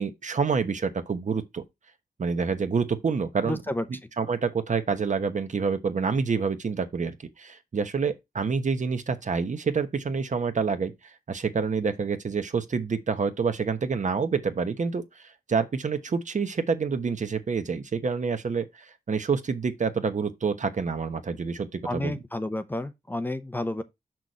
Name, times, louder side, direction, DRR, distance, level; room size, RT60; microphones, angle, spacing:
voice 1, 0.0-1.6 2.2-3.6 4.2-10.9 11.3-22.2, right 5 dB, 55° right, 1.1 m, -27 dB
voice 2, 3.4-3.8 21.8-23.8, left 1 dB, 15° left, 0.7 m, -30 dB
6.4 x 6.2 x 4.1 m
wide cardioid pair, 120°, 15 cm